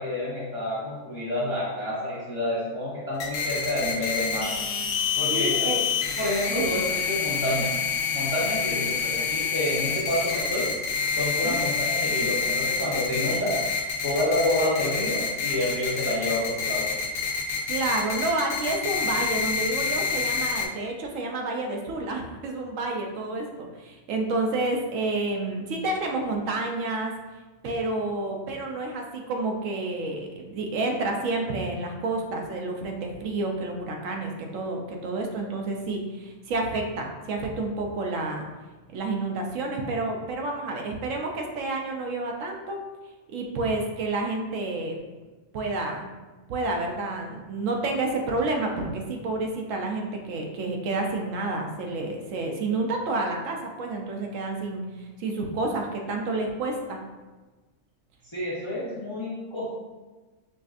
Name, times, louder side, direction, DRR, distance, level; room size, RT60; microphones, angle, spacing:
voice 1, 0.0-4.5 5.1-5.7 6.2-7.7 8.1-10.7 11.2-13.6 14.0-17.0 58.3-59.8, left 1 dB, 35° left, -7 dB, 0.5 m, -29 dB
sound 1, 3.2-20.7, left 5 dB, 80° left, 1.0 m, -27 dB
voice 2, 5.3-5.8 6.5-6.6 11.4-11.7 17.7-27.1 27.6-38.5 38.9-42.8 43.3-45.0 45.5-46.1 46.5-57.0, right 2 dB, 75° right, 2 dB, 0.9 m, -29 dB
5.0 x 2.4 x 2.4 m, 1.2 s
omnidirectional pair, 1.4 m